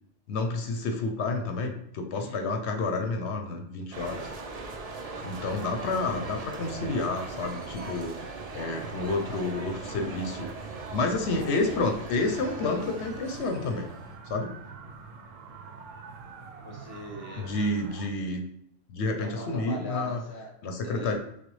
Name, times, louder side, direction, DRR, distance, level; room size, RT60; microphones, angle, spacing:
voice 1, 0.3-4.2 5.2-8.2 8.5-10.5 10.9-13.9 14.3-14.5 17.4-18.4 18.9-20.2 20.6-21.2, left 3 dB, 65° left, 4 dB, 0.9 m, -29 dB
voice 2, 2.1-2.5 16.6-17.6 19.2-20.5 20.8-21.1, left 1 dB, 20° left, 0 dB, 0.7 m, -41 dB
sound 1, 3.9-14.2, right 3 dB, 50° right, 0.4 m, -39 dB
sound 2, 12.2-18.1, right 4 dB, 80° right, 1.0 m, -45 dB
6.4 x 2.3 x 3.1 m, 0.74 s
omnidirectional pair, 1.3 m